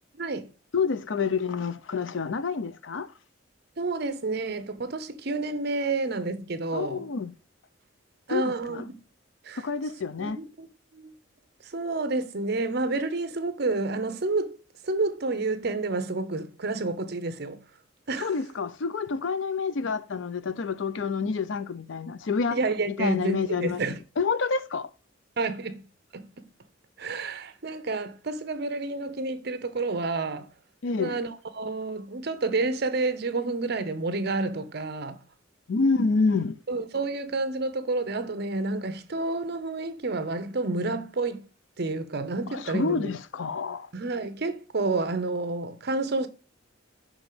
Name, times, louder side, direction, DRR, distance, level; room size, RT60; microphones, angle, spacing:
voice 1, 0.2-0.5 3.8-7.0 8.3-9.0 9.4-9.6 10.2-10.7 10.9-11.1 11.6-14.6 14.8-17.6 18.1-18.3 22.5-24.0 25.4-26.2 27.0-30.5 31.0-35.2 36.7-41.4 41.8-43.1 43.9-46.3, right 3 dB, 55° right, 0.8 m, -29 dB
voice 2, 0.7-3.1 6.7-7.3 8.3-8.8 9.6-10.4 18.2-22.6 22.9-23.8 24.2-24.9 30.8-31.2 35.7-36.6 42.5-43.9, left 4 dB, 70° left, 0.5 m, -28 dB
6.1 x 3.8 x 4.9 m
head